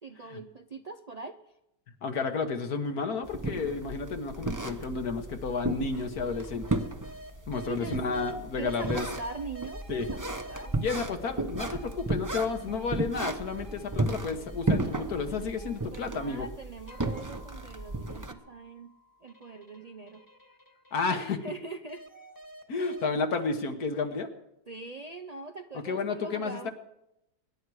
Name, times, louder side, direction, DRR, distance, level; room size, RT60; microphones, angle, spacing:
voice 1, 0.0-1.5 7.7-8.0 8.6-10.8 15.9-18.9 19.2-20.2 21.0-22.0 24.7-26.7, right 3 dB, 60° right, 5 dB, 0.4 m, -42 dB
voice 2, 2.0-6.8 7.5-9.1 9.9-10.1 10.8-16.5 20.9-21.4 22.7-24.3 25.7-26.7, left 4 dB, 70° left, 6 dB, 1.8 m, -31 dB
sound 1, 3.2-18.3, right 2 dB, 15° right, 0.7 m, -34 dB
sound 2, 5.2-5.3 5.9-8.3 8.7-11.1 11.6-14.2 14.5-16.5 16.9-21.5 21.9-23.1, equal, 15° left, 1.3 m, -49 dB
25.0 x 11.0 x 4.8 m, 0.86 s
omnidirectional pair, 1.7 m